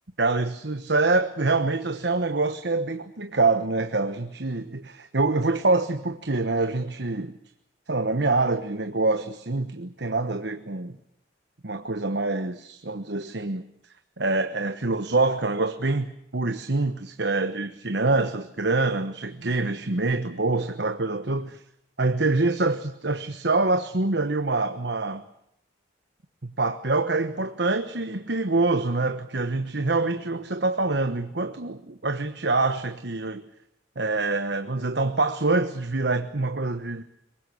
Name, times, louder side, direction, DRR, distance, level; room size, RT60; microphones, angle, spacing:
voice 1, 0.2-7.3 7.9-11.0 11.6-13.6 14.2-21.6 22.0-25.2 26.4-33.4 34.0-37.0, right 3 dB, 60° right, 9 dB, 1.2 m, -25 dB
23.5 x 21.0 x 8.4 m, 0.74 s
head